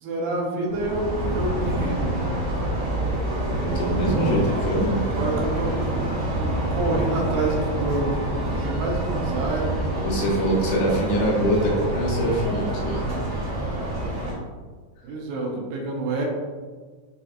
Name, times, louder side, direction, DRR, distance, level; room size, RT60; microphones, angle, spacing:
voice 1, 0.0-2.1 4.1-4.4 4.9-5.7 6.4-9.7 15.0-16.3, right 2 dB, 80° right, -1 dB, 2.6 m, -28 dB
sound 1, 0.7-14.3, right 1 dB, 60° right, 1.6 m, -27 dB
voice 2, 3.6-5.1 10.0-13.0, equal, 80° left, -2 dB, 2.4 m, -24 dB
6.5 x 2.8 x 2.4 m, 1.4 s
omnidirectional pair, 4.9 m